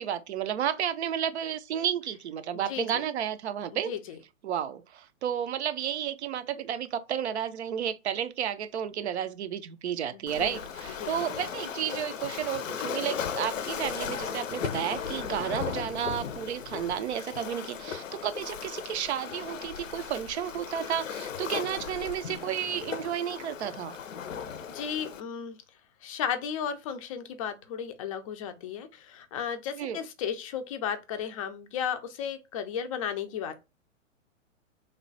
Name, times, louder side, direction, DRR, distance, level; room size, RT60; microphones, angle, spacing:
voice 1, 0.0-3.9 4.4-24.0 29.8-30.0, right 9 dB, 60° right, 0.5 m, -32 dB
Waves surf, 10.3-25.2, left 7 dB, 80° left, 0.6 m, -36 dB
voice 2, 24.7-25.6 26.0-33.6, left 8 dB, 30° left, 0.4 m, -34 dB
3.2 x 2.2 x 3.8 m
figure-of-eight pair, 120°, 38 cm